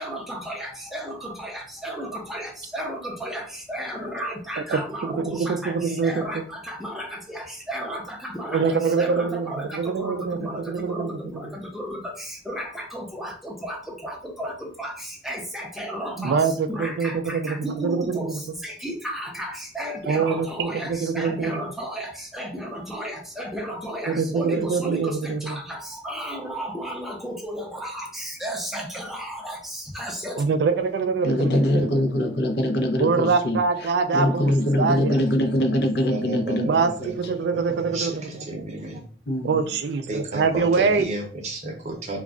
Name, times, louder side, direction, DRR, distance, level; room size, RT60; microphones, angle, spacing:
voice 1, 0.0-30.4, equal, ahead, -1 dB, 0.5 m, -34 dB
voice 2, 5.2-6.1 8.5-11.1 16.2-18.2 20.1-21.6 24.1-25.6 30.4-31.9 33.0-34.5 34.8-35.1 36.7-38.4 39.4-41.1, right 5 dB, 65° right, 9 dB, 0.3 m, -24 dB
voice 3, 31.2-37.1 39.3-39.5, left 1 dB, 65° left, 4 dB, 0.5 m, -23 dB
voice 4, 35.5-35.8 36.1-39.0 40.1-42.2, right 2 dB, 40° right, 1 dB, 0.7 m, -33 dB
2.3 x 2.1 x 3.6 m, 0.43 s
head